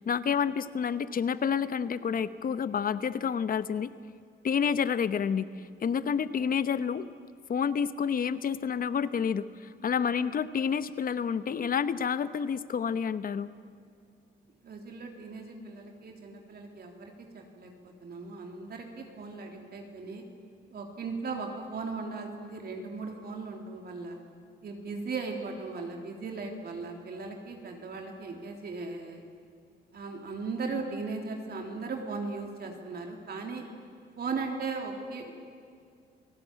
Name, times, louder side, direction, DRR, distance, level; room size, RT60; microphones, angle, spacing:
voice 1, 0.0-3.9 4.4-5.5 5.8-7.1 7.5-13.5, left 7 dB, 45° left, 14 dB, 1.0 m, -29 dB
voice 2, 14.6-20.2 20.7-24.2 24.6-29.2 29.9-33.7 34.2-35.3, right 4 dB, 50° right, 2 dB, 3.3 m, -37 dB
28.5 x 18.0 x 8.8 m, 2.2 s
cardioid pair, 90°, 20 cm